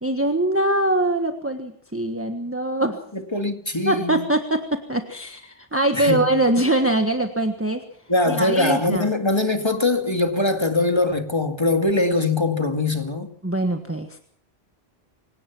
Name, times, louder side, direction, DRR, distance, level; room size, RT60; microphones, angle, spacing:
voice 1, 0.0-3.0 3.8-7.8 8.3-9.1 13.4-14.2, right 1 dB, 15° right, 1.4 m, -23 dB
voice 2, 3.1-4.3 5.9-6.2 8.1-13.3, left 2 dB, 25° left, 2.3 m, -22 dB
26.0 x 18.0 x 6.0 m
omnidirectional pair, 1.1 m